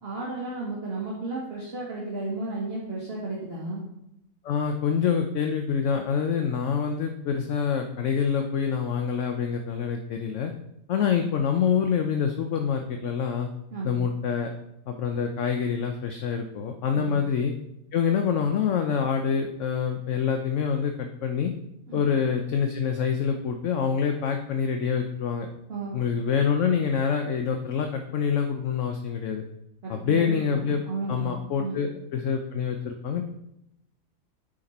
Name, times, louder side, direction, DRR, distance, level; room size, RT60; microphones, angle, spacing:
voice 1, 0.0-3.8 13.7-14.0 16.9-17.2 21.9-22.1 25.7-26.0 29.8-31.9, right 3 dB, 40° right, -4 dB, 1.6 m, -33 dB
voice 2, 4.4-10.5 10.9-13.5 13.8-14.5 14.9-17.5 17.9-21.5 21.9-25.5 25.9-29.4 29.9-30.8 31.1-33.2, left 7 dB, 60° left, 5 dB, 0.9 m, -26 dB
9.4 x 5.2 x 4.2 m, 0.83 s
omnidirectional pair, 1.6 m